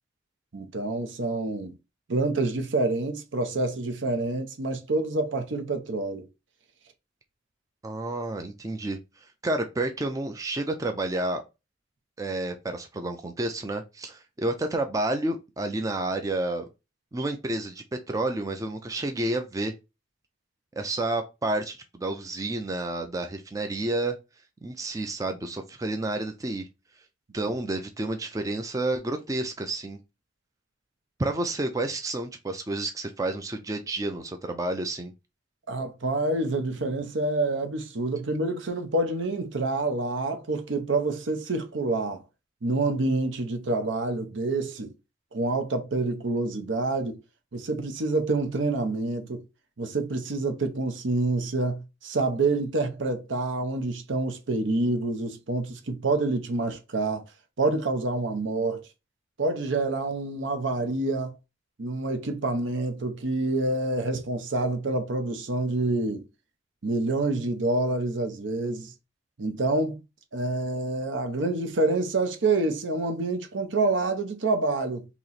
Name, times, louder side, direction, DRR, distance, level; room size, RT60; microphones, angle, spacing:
voice 1, 0.5-1.7 2.1-6.3 27.5-27.6 35.7-42.2 42.6-44.9 45.3-47.2 47.5-49.4 49.8-57.2 57.6-58.8 59.4-61.3 61.8-66.2 66.8-68.9 69.4-70.0 70.3-75.1, right 2 dB, 75° right, 0.7 m, -27 dB
voice 2, 7.8-9.0 9.4-11.4 12.2-16.7 17.1-19.7 20.7-24.2 24.6-26.7 27.3-30.0 31.2-35.1, right 2 dB, 20° right, 0.4 m, -30 dB
3.0 x 2.9 x 4.0 m
head